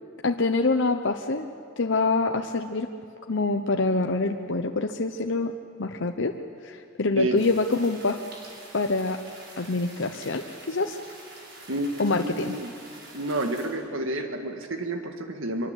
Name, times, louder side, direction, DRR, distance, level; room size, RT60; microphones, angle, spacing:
voice 1, 0.2-1.5 1.8-2.9 3.3-5.5 5.8-6.4 6.6-8.2 8.7-9.2 9.6-11.0 12.0-12.6, left 3 dB, 65° left, 4 dB, 0.9 m, -25 dB
sound 1, 7.4-13.7, right 2 dB, 55° right, 6.0 m, -46 dB
voice 2, 11.7-12.7 13.1-15.7, right 1 dB, 85° right, 5 dB, 1.9 m, -30 dB
24.0 x 23.0 x 8.2 m, 2.6 s
head